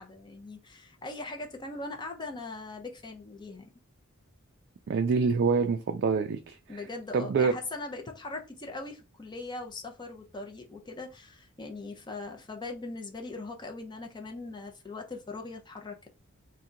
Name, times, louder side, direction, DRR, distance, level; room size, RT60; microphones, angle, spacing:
voice 1, 0.0-3.7 6.7-16.1, left 3 dB, 20° left, 0.5 m, -40 dB
voice 2, 4.9-6.6 7.1-7.5, right 5 dB, 50° right, 0.3 m, -26 dB
2.8 x 2.2 x 3.6 m
head